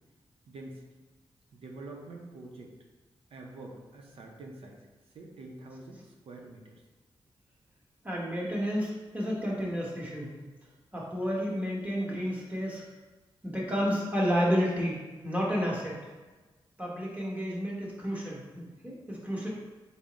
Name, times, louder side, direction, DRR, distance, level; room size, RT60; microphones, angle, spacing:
voice 1, 0.5-0.8 1.5-2.7 3.3-4.9 5.1-6.8, right 2 dB, 80° right, 0 dB, 0.5 m, -46 dB
voice 2, 8.0-10.3 10.9-12.8 13.4-16.0 16.8-19.5, equal, 15° right, -5 dB, 1.0 m, -31 dB
3.5 x 2.0 x 3.9 m, 1.2 s
cardioid pair, 90°, 10 cm